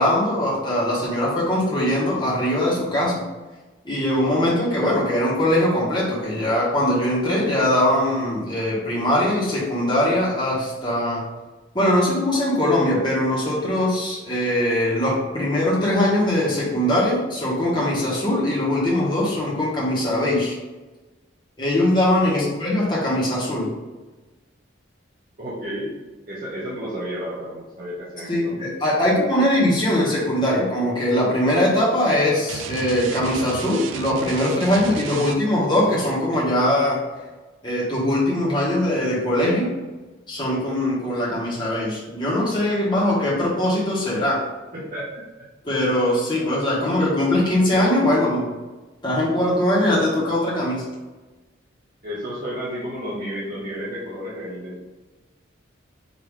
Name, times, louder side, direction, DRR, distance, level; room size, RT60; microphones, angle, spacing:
voice 1, 0.0-3.2 3.8-11.3 11.7-20.6 21.6-23.7 28.3-37.0 37.6-39.7 40.3-44.5 45.6-48.5 49.0-50.8, left 1 dB, 25° left, -7 dB, 1.4 m, -21 dB
voice 2, 22.2-22.5 25.4-25.9 26.3-28.5 28.9-29.2 44.7-45.2 52.0-54.9, equal, 45° right, -8 dB, 1.1 m, -32 dB
sound 1, 32.5-35.7, right 6 dB, 85° right, 0.4 m, -33 dB
5.4 x 2.9 x 3.2 m, 1.2 s
head